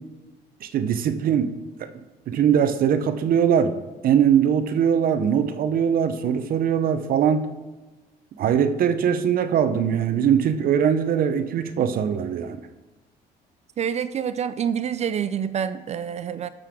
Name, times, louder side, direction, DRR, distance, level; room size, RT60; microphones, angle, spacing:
voice 1, 0.6-1.5 2.3-3.7 4.0-7.5 8.4-12.6, right 8 dB, 60° right, 10 dB, 0.8 m, -21 dB
voice 2, 13.8-16.5, right 8 dB, 40° right, 13 dB, 0.4 m, -27 dB
11.5 x 6.6 x 3.7 m, 1.2 s
cardioid pair, 110°, 17 cm